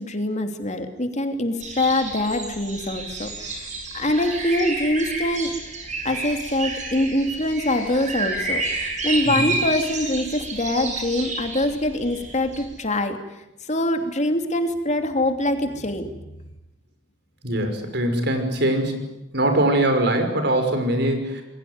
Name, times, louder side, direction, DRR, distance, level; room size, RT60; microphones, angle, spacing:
voice 1, 0.0-5.5 6.0-16.2, left 1 dB, 40° left, 6 dB, 2.9 m, -24 dB
sound 1, 1.6-12.8, right 3 dB, 40° right, 6.9 m, -30 dB
voice 2, 17.4-19.0 19.3-21.4, right 1 dB, 60° right, 6 dB, 5.9 m, -22 dB
28.0 x 22.0 x 9.6 m, 0.94 s
head